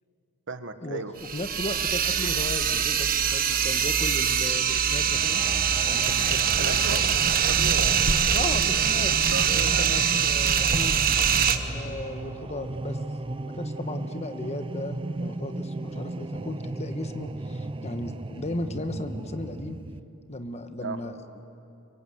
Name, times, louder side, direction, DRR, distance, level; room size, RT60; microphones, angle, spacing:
voice 1, 0.5-1.1 6.5-8.7 9.3-10.0 20.8-21.0, right 4 dB, 60° right, 9 dB, 1.4 m, -36 dB
sound 1, 1.2-11.6, right 7 dB, 40° right, 1.2 m, -23 dB
voice 2, 1.3-5.4 5.7-7.0 8.3-11.0 11.7-13.0 13.4-19.8 20.3-21.4, left 2 dB, 30° left, 9 dB, 1.2 m, -36 dB
sound 2, 5.0-20.0, right 2 dB, 25° right, 0.6 m, -36 dB
25.5 x 23.5 x 7.9 m, 2.8 s
head